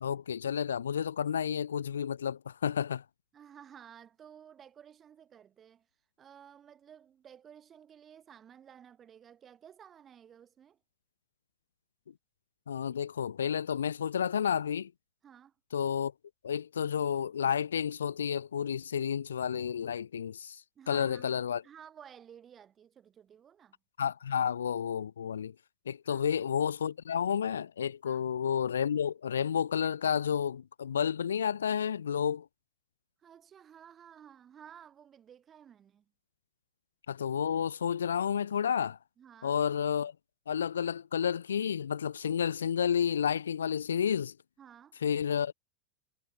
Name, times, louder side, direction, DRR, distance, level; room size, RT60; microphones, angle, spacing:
voice 1, 0.0-3.0 12.7-14.9 15.7-16.1 16.4-20.6 20.9-21.6 24.0-25.5 25.9-32.5 37.1-39.0 39.4-40.1 40.5-44.3 45.0-45.5, left 8 dB, 65° left, 0.3 m, -31 dB
voice 2, 3.3-5.9 6.2-10.8 15.2-15.5 20.7-23.8 24.3-24.4 26.1-26.3 28.0-28.2 33.2-36.1 39.2-39.6 44.6-45.0, right 8 dB, 25° right, 6.2 m, -54 dB
figure-of-eight pair, 90°, 0 cm